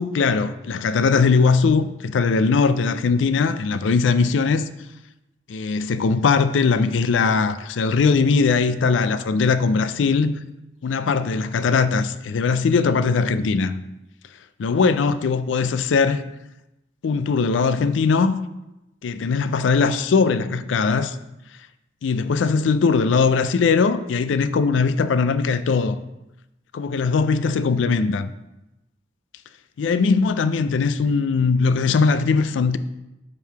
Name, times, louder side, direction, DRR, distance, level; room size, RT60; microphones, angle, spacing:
voice 1, 0.0-4.7 5.5-10.4 10.8-13.7 14.6-16.2 17.0-18.4 19.0-21.2 22.0-26.0 26.7-28.3 29.8-32.8, left 4 dB, 90° left, 0.4 m, -20 dB
5.2 x 4.6 x 4.6 m
head